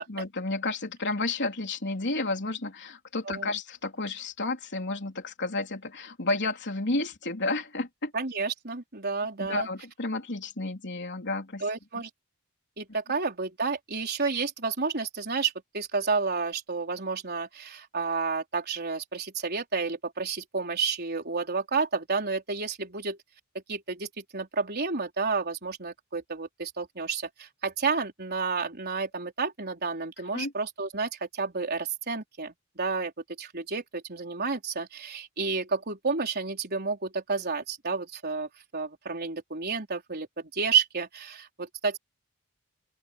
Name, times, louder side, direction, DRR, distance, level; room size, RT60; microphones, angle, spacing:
voice 1, 0.0-8.1 9.4-11.6 30.3-30.5, left 2 dB, 55° left, 3.6 m, -31 dB
voice 2, 3.3-3.6 8.1-9.7 11.6-12.1 12.8-23.2 23.7-33.1 33.4-42.0, right 4 dB, 50° right, 4.3 m, -31 dB
open air
head